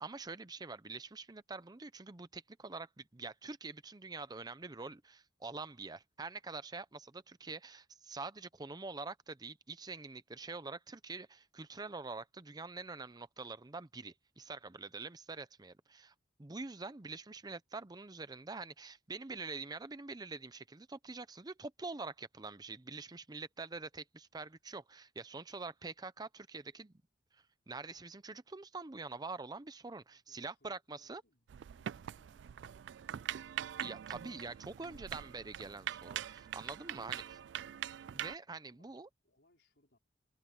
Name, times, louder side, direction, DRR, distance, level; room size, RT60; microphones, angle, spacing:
voice 1, 0.0-26.9 27.3-31.2 33.8-37.2 38.1-39.1, right 3 dB, 20° right, 0.6 m, -45 dB
voice 2, 30.1-34.6 36.7-37.8 38.6-39.0 39.2-40.0, left 1 dB, 70° left, 4.9 m, -73 dB
sound 1, 31.5-38.4, right 10 dB, 75° right, 0.3 m, -43 dB
head